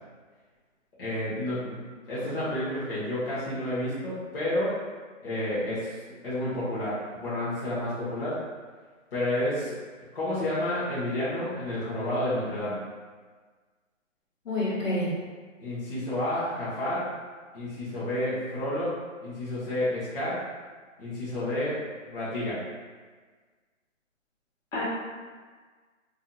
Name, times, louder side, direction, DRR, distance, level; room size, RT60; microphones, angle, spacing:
voice 1, 1.0-4.7 5.2-5.9 6.2-8.4 9.1-9.7 10.1-12.8 15.6-17.1 17.5-20.4 21.0-21.8 22.1-22.6, left 1 dB, 45° left, -11 dB, 0.9 m, -30 dB
voice 2, 14.4-15.1 24.7-24.8, left 1 dB, 70° left, -7 dB, 1.2 m, -28 dB
2.6 x 2.2 x 2.6 m, 1.5 s
hypercardioid pair, 165°, 40 cm